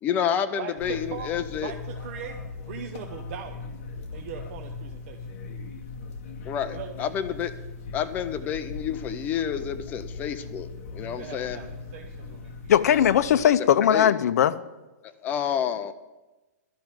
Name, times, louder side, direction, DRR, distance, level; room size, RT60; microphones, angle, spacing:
voice 1, 0.0-1.7 6.5-7.5 7.9-11.6 13.6-14.1 15.0-15.9, left 8 dB, 20° left, 11 dB, 0.5 m, -29 dB
voice 2, 0.6-1.3 1.6-3.6 4.1-5.3 6.7-7.1 8.4-8.5 11.0-12.7, right 8 dB, 40° right, 2 dB, 0.9 m, -40 dB
sound 1, 0.8-13.4, left 4 dB, 45° left, 1.4 m, -39 dB
voice 3, 12.7-14.6, left 9 dB, 65° left, 12 dB, 0.6 m, -19 dB
11.5 x 5.9 x 9.0 m, 1.1 s
hypercardioid pair, 165°, 9 cm